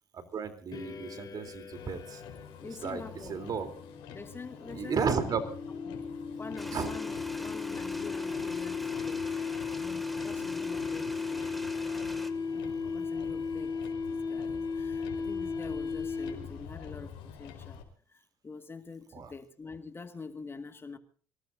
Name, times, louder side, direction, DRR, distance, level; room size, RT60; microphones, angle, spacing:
voice 1, 0.1-2.2 2.8-3.7 4.7-5.4 6.7-6.9 19.1-19.3, right 6 dB, 45° right, 3.5 m, -33 dB
sound 1, 0.7-16.6, left 5 dB, 45° left, 3.1 m, -36 dB
Motor vehicle (road), 1.7-17.8, left 8 dB, 70° left, 4.5 m, -48 dB
voice 2, 2.6-3.4 4.1-5.2 5.7-6.0 6.4-9.3 9.8-11.5 12.5-13.8 14.1-17.8 18.1-21.0, left 4 dB, 25° left, 2.0 m, -45 dB
sound 2, 6.6-12.3, equal, ahead, 2.2 m, -44 dB
25.5 x 18.0 x 2.7 m
supercardioid pair, 75°, 9 cm